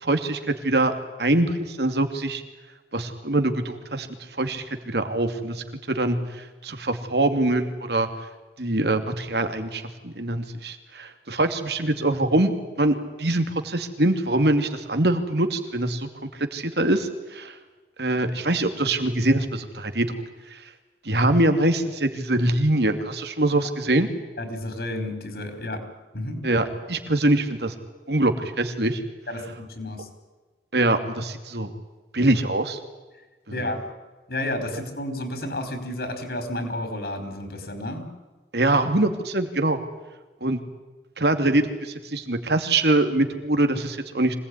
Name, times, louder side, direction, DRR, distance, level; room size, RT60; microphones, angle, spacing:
voice 1, 0.0-2.4 2.9-4.1 4.4-8.1 8.6-16.1 16.4-17.6 18.0-20.1 20.5-20.6 21.0-24.1 26.4-27.7 28.1-29.0 30.7-31.7 32.1-32.8 33.5-33.7 38.5-39.8 40.4-40.6 41.2-44.3, right 2 dB, 70° right, 7 dB, 2.7 m, -23 dB
voice 2, 24.4-25.8 26.1-26.4 29.3-30.1 33.5-33.8 34.3-38.1, left 1 dB, 65° left, 7 dB, 5.0 m, -31 dB
25.5 x 19.0 x 10.0 m, 1.2 s
head